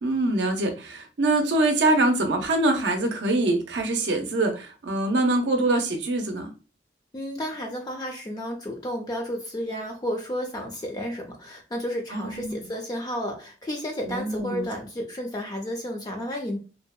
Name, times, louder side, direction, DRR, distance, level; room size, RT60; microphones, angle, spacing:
voice 1, 0.0-6.5 12.1-12.5 14.1-14.6, right 2 dB, 75° right, 0.5 m, -24 dB
voice 2, 7.1-16.6, equal, 20° left, 0.4 m, -32 dB
2.7 x 2.0 x 2.2 m
head